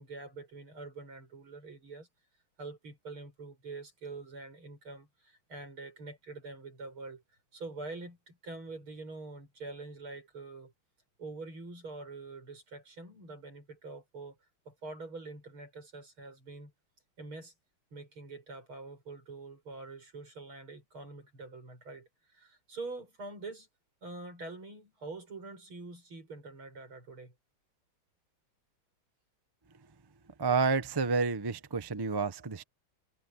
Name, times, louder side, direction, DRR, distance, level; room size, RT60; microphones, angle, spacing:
voice 1, 0.0-2.1 2.6-7.2 7.5-10.7 11.2-14.4 14.6-16.7 17.2-17.5 17.9-23.7 24.0-27.3, right 3 dB, 80° right, 8.5 m, -45 dB
voice 2, 30.4-32.6, right 4 dB, 30° right, 0.4 m, -29 dB
omnidirectional pair, 2.3 m